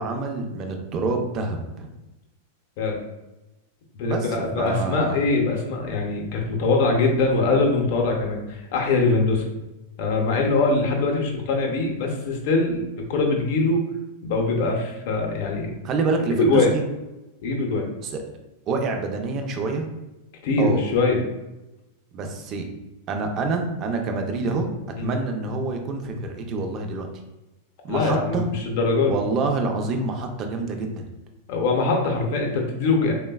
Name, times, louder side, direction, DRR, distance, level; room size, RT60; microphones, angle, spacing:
voice 1, 0.0-1.9 4.0-5.2 15.8-16.8 18.0-18.2 18.7-19.9 20.6-20.8 22.1-22.6 23.1-24.7 25.0-27.1 27.8-28.5 29.1-31.0, right 3 dB, 35° right, 4 dB, 0.4 m, -27 dB
voice 2, 3.9-9.4 10.0-12.8 13.1-13.9 14.2-15.7 16.4-16.7 17.4-17.9 20.4-21.2 25.0-25.2 27.9-29.2 31.5-33.1, left 3 dB, 60° left, 1 dB, 0.6 m, -22 dB
3.2 x 2.1 x 2.2 m, 1.0 s
supercardioid pair, 135°, 0 cm